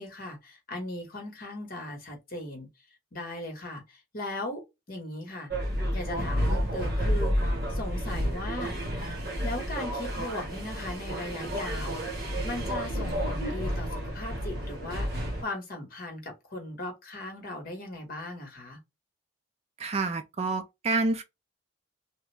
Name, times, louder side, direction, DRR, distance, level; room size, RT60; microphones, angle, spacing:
voice 1, 0.0-2.7 3.1-4.6 4.9-5.5 5.9-7.4 7.7-8.8 9.4-12.0 12.4-15.1 15.4-18.8, left 1 dB, 45° left, 1.1 m, -38 dB
sound 1, 5.5-15.4, equal, 50° right, 1.2 m, -30 dB
voice 2, 19.8-21.2, right 3 dB, 30° right, 0.3 m, -28 dB
3.1 x 2.4 x 3.2 m
head